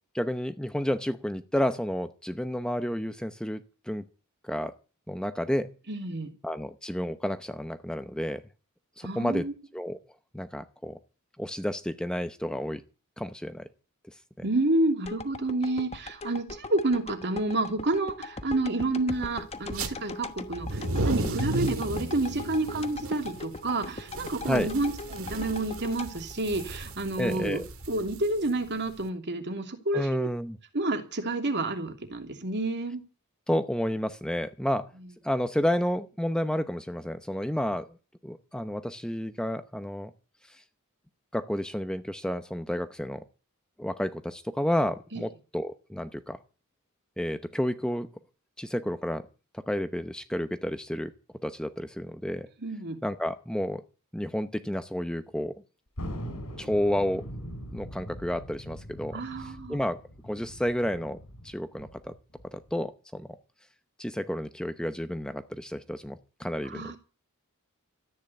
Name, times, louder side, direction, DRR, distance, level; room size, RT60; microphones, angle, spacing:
voice 1, 0.1-4.0 4.4-4.7 5.1-5.7 6.4-8.4 9.0-9.5 9.7-10.0 10.3-11.0 11.4-12.8 13.2-13.7 14.4-14.5 24.4-24.7 27.2-27.7 29.9-30.6 33.5-34.9 35.2-37.9 38.2-40.1 40.5-40.6 41.3-43.2 43.8-46.4 47.2-48.1 48.6-49.3 49.7-51.1 51.4-52.5 53.0-53.8 54.1-55.6 56.6-57.2 57.7-61.2 61.4-62.1 62.5-63.4 64.0-67.0, equal, 5° left, 0.8 m, -31 dB
voice 2, 5.9-6.3 9.0-9.5 14.4-27.6 27.9-30.3 30.7-33.0 45.1-45.2 52.6-53.0 59.1-59.8 66.6-67.0, right 2 dB, 50° right, 2.9 m, -29 dB
sound 1, 15.0-27.2 27.7-27.8, left 3 dB, 30° left, 1.2 m, -41 dB
sound 2, 19.6-19.9 20.5-29.0, right 2 dB, 65° right, 2.0 m, -34 dB
Thunder, 56.0-62.8, equal, 90° left, 3.7 m, -41 dB
14.0 x 9.4 x 8.4 m
head